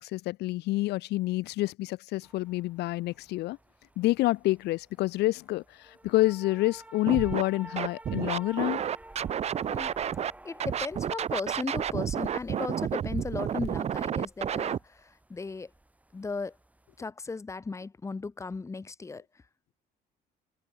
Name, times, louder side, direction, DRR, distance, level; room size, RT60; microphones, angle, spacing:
voice 1, 0.0-3.6 4.0-8.8, left 18 dB, 80° left, 1.4 m, -28 dB
sound 1, 2.2-17.1, right 1 dB, 10° right, 4.3 m, -51 dB
Scratching (performance technique), 7.1-7.4 7.8-10.3 10.6-14.8, right 9 dB, 40° right, 0.6 m, -30 dB
voice 2, 10.4-15.7 16.1-16.6 17.0-19.2, left 4 dB, 15° left, 0.8 m, -36 dB
cardioid pair, 110°, 17 cm